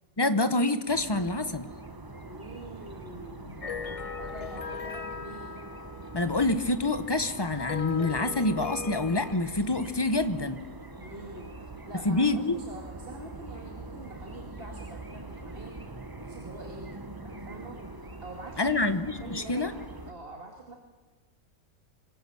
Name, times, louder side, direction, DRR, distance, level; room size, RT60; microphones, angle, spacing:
voice 1, 0.2-1.7 6.1-10.6 12.0-12.6 18.6-19.7, left 2 dB, 20° left, 10 dB, 0.9 m, -27 dB
sound 1, 0.9-20.1, right 2 dB, 15° right, 1.0 m, -43 dB
voice 2, 2.3-3.6 4.2-5.6 11.0-15.8 16.2-16.9 17.2-17.8 18.2-18.8 19.2-20.8, right 2 dB, 40° right, 1 dB, 2.4 m, -45 dB
sound 2, 3.6-9.4, left 5 dB, 35° left, 0.5 m, -39 dB
26.0 x 21.0 x 7.0 m, 1.4 s
omnidirectional pair, 1.6 m